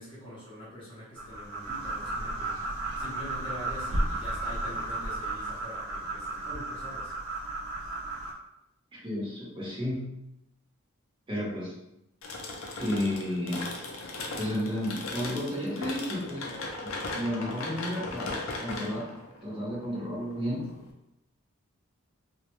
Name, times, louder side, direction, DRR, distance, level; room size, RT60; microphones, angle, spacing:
voice 1, 0.0-2.6 3.0-7.1, equal, 25° left, -8 dB, 0.6 m, -44 dB
sound 1, 1.2-8.3, right 2 dB, 80° right, 0.5 m, -33 dB
voice 2, 9.0-10.0 11.3-11.7 12.8-13.8 14.4-16.5 16.8-19.0 19.4-20.6, left 1 dB, 25° right, -7 dB, 0.7 m, -32 dB
sound 2, 12.2-20.9, left 2 dB, 70° left, 0.4 m, -38 dB
2.1 x 2.0 x 2.9 m, 0.86 s
head